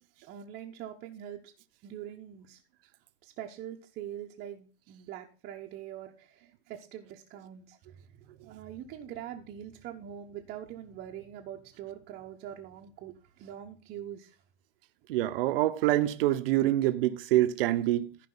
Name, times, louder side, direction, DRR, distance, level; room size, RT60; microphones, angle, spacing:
voice 1, 0.2-1.5 1.8-2.6 3.2-14.4, right 10 dB, 30° right, 1.0 m, -43 dB
voice 2, 15.1-18.2, right 14 dB, 55° right, 0.9 m, -26 dB
15.0 x 5.1 x 3.9 m
hypercardioid pair, 135°, 34 cm